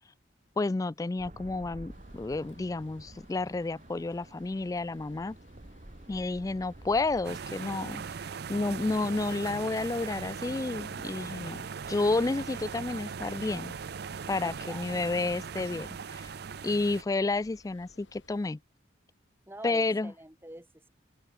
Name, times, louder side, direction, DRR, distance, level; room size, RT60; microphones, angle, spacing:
voice 1, 0.6-5.3 6.1-8.0 8.5-11.6 11.9-13.8 14.3-16.3 16.6-18.6 19.6-20.1, left 3 dB, 20° left, 0.3 m, -30 dB
sound 1, 1.2-7.3, right 1 dB, 40° right, 1.6 m, -50 dB
sound 2, 1.9-18.5, left 2 dB, 75° left, 6.9 m, -61 dB
sound 3, 7.2-17.0, right 6 dB, 55° right, 0.5 m, -39 dB
voice 2, 14.4-15.0 19.5-20.9, right 1 dB, 10° right, 3.7 m, -46 dB
open air
head